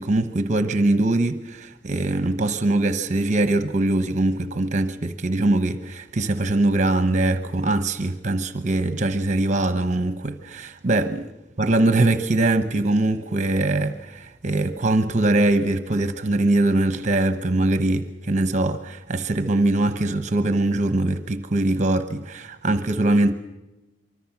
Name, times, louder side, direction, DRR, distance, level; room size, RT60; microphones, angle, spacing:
voice 1, 0.0-11.3 11.6-23.3, right 2 dB, 40° right, 1.0 m, -22 dB
25.5 x 24.0 x 6.0 m
head